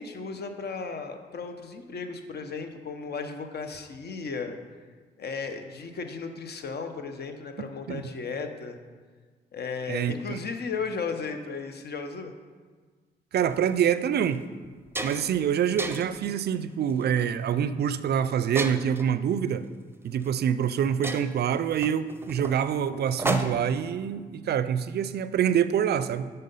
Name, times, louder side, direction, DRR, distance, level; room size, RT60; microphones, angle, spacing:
voice 1, 0.0-4.6 5.2-8.8 9.5-12.3, left 5 dB, 55° left, 6 dB, 0.8 m, -35 dB
voice 2, 9.9-10.4 13.3-14.4 15.0-19.6 20.0-26.3, right 8 dB, 60° right, 14 dB, 0.4 m, -26 dB
sound 1, 13.5-13.7 14.2-14.4 14.6-15.4 15.8-16.2 16.9-17.2 18.6-19.1 20.2-20.3 20.6-20.7 21.0-23.8, right 2 dB, 10° right, 0.6 m, -33 dB
5.4 x 5.4 x 5.4 m, 1.5 s
supercardioid pair, 50°, 19 cm